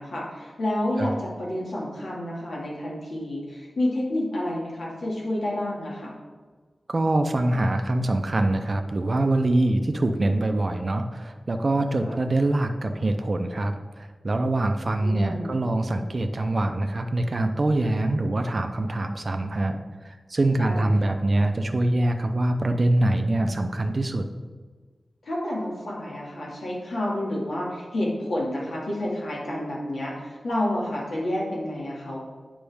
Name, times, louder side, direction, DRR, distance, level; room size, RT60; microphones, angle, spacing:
voice 1, 0.0-6.1 12.0-12.2 15.0-15.6 20.6-21.1 25.2-32.2, left 1 dB, 85° left, -4 dB, 2.0 m, -29 dB
voice 2, 6.9-19.8 20.0-24.3, right 2 dB, 45° right, 6 dB, 0.5 m, -24 dB
8.6 x 5.2 x 3.5 m, 1.4 s
wide cardioid pair, 105°, 0 cm